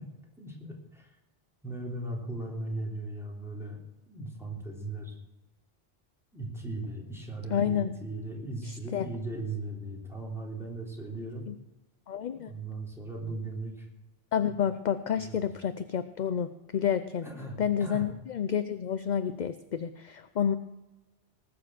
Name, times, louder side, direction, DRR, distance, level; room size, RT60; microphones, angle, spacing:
voice 1, 0.4-1.1 1.6-3.8 4.1-5.2 6.3-11.5 12.4-13.9 15.2-15.4 17.2-18.1, right 2 dB, ahead, -2 dB, 3.5 m, -38 dB
voice 2, 7.5-8.0 8.6-9.1 11.5-11.6 12.1-12.5 14.3-17.3 17.6-20.6, left 8 dB, 50° left, 11 dB, 0.7 m, -29 dB
19.5 x 6.9 x 7.5 m, 1.1 s
omnidirectional pair, 1.0 m